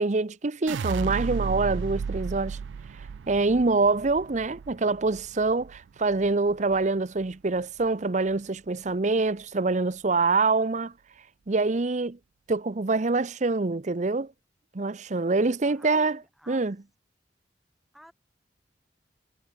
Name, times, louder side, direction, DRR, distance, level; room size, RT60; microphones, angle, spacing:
voice 1, 0.0-2.6 3.3-10.9 11.5-12.2 12.5-14.3 14.7-16.2 16.5-16.8, right 3 dB, 40° right, 0.7 m, -25 dB
sound 1, 0.7-6.8 7.2-7.8, right 6 dB, 85° right, 0.4 m, -34 dB
voice 2, 15.4-16.7 17.9-18.1, equal, ahead, 3.7 m, -53 dB
head